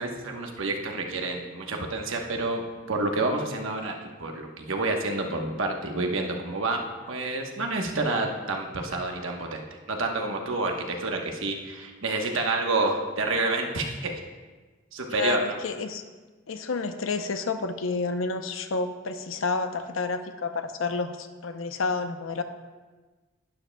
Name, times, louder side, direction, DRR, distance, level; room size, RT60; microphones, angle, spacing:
voice 1, 0.0-2.6 2.9-3.9 4.2-6.8 7.1-9.6 9.9-14.2 14.9-15.6, right 2 dB, 75° right, 2 dB, 1.1 m, -28 dB
voice 2, 15.1-16.0 16.5-22.4, left 4 dB, 75° left, 9 dB, 0.6 m, -30 dB
11.5 x 9.9 x 2.2 m, 1.3 s
head